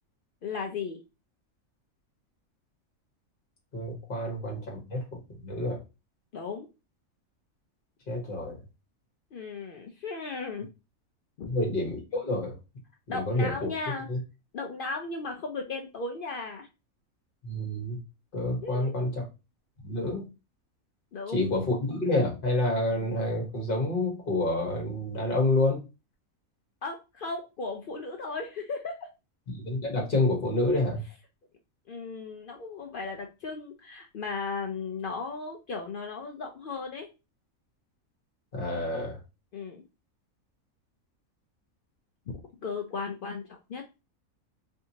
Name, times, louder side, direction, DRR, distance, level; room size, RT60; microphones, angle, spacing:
voice 1, 0.4-1.0 6.3-6.7 9.3-10.7 11.4-11.6 13.1-14.1 14.5-16.7 18.6-18.9 21.1-21.5 26.8-29.1 31.9-37.1 39.5-39.8 42.6-44.0, left 4 dB, 75° left, 3 dB, 0.4 m, -36 dB
voice 2, 3.7-5.0 5.4-5.8 8.1-8.6 11.5-12.6 13.1-13.7 14.1-14.2 17.4-18.0 18.3-19.2 19.8-20.3 21.3-25.8 29.5-31.0 38.5-39.2, left 2 dB, 40° left, 0 dB, 1.3 m, -28 dB
3.3 x 2.7 x 2.7 m, 0.27 s
omnidirectional pair, 1.5 m